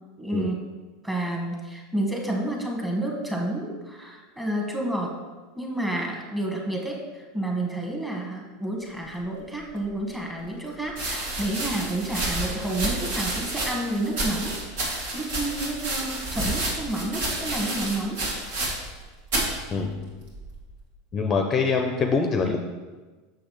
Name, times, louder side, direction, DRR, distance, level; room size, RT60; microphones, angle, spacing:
voice 1, 0.2-0.6 1.0-5.1 5.5-14.6 14.8-18.2, right 1 dB, 10° right, -1 dB, 1.2 m, -30 dB
sound 1, 9.8-9.9 10.9-19.0 19.3-19.6 20.3-20.7, right 1 dB, 80° right, 1.9 m, -30 dB
voice 2, 19.7-20.1 21.1-22.6, left 4 dB, 25° left, 4 dB, 0.5 m, -24 dB
6.4 x 6.0 x 3.0 m, 1.3 s
supercardioid pair, 130°, 0 cm